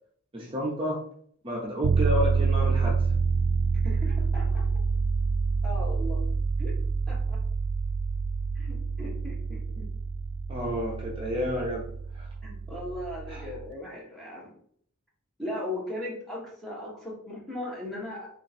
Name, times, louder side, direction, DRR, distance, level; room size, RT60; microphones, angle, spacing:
voice 1, 0.3-1.0 1.4-3.0 10.5-11.8 12.1-12.3 13.3-13.4, equal, 25° right, -4 dB, 0.7 m, -30 dB
sound 1, 1.8-13.7, right 4 dB, 60° right, 0.3 m, -27 dB
voice 2, 3.8-4.6 5.6-6.2 6.6-6.7 7.1-7.4 8.5-9.9 12.4-14.6 15.4-18.4, left 1 dB, ahead, -4 dB, 1.1 m, -38 dB
3.7 x 2.5 x 4.1 m, 0.62 s
head